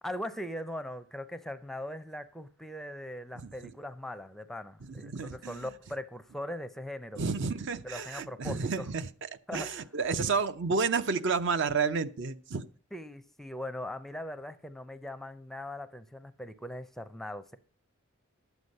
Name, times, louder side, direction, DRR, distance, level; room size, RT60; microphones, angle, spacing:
voice 1, 0.0-7.2 7.8-8.9 9.5-9.7 12.9-17.6, left 1 dB, ahead, 0.5 m, -40 dB
voice 2, 3.4-3.7 4.8-5.7 7.2-12.6, right 4 dB, 55° right, 0.6 m, -31 dB
11.5 x 8.0 x 5.3 m
head